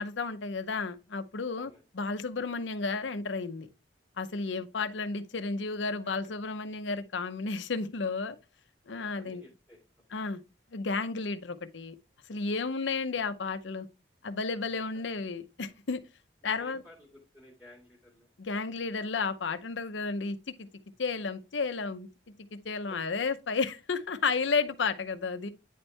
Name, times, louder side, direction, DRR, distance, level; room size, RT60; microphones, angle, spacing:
voice 1, 0.0-1.7 1.9-3.7 4.2-8.4 8.9-9.4 10.1-10.4 10.7-11.9 12.3-13.9 14.2-16.0 16.4-16.8 18.4-20.7 21.0-22.1 22.5-25.5, left 4 dB, 80° left, 0.7 m, -32 dB
voice 2, 1.5-1.8 4.6-5.0 6.0-6.3 8.9-9.8 12.6-12.7 14.7-15.0 16.4-18.3 22.9-23.0, left 1 dB, ahead, 1.9 m, -55 dB
9.2 x 4.4 x 3.2 m
head